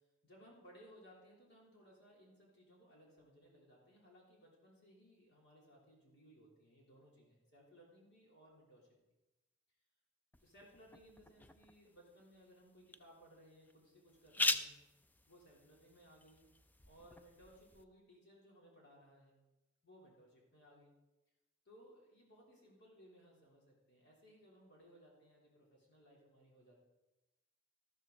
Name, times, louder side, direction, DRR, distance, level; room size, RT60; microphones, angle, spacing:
voice 1, 0.2-9.0 10.4-14.8 15.3-16.5 16.9-19.3 19.8-20.9 21.6-26.7, equal, 55° left, -3 dB, 3.3 m, -63 dB
sound 1, 10.3-17.8, left 2 dB, 10° left, 0.3 m, -43 dB
13.0 x 12.5 x 3.9 m, 0.99 s
head